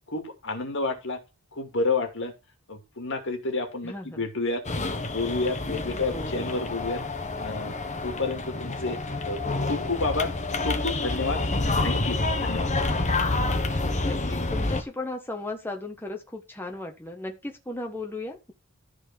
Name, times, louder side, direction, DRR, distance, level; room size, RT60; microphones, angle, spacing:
voice 1, 0.1-1.2 1.5-2.3 2.7-4.6 5.1-7.0 7.4-7.7 8.0-9.0 9.2-10.3 10.6-11.4 11.8-12.7, left 3 dB, 55° left, 5 dB, 2.4 m, -30 dB
voice 2, 3.8-4.2 6.1-6.5 14.0-18.5, left 2 dB, 10° left, 2 dB, 1.4 m, -36 dB
sound 1, 4.6-14.8, left 2 dB, 35° left, 1.4 m, -28 dB
13.5 x 4.6 x 6.0 m, 0.27 s
head